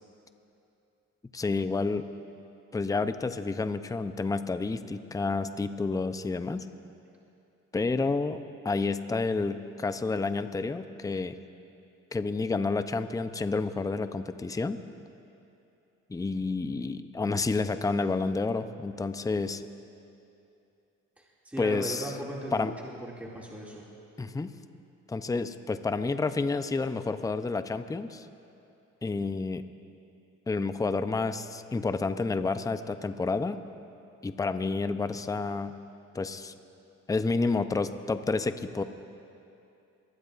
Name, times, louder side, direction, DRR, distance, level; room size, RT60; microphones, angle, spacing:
voice 1, 1.3-2.1 2.7-6.7 7.7-11.4 12.1-14.8 16.1-19.6 21.6-22.1 22.5-22.7 24.2-24.5 25.1-28.3 29.0-29.6 30.5-33.6 34.2-35.8 36.1-36.5 37.1-38.8, left 3 dB, 10° left, 10 dB, 0.5 m, -30 dB
voice 2, 21.2-23.9, right 1 dB, 5° right, -4 dB, 2.3 m, -38 dB
24.5 x 19.0 x 2.5 m, 2.7 s
cardioid pair, 90°, 30 cm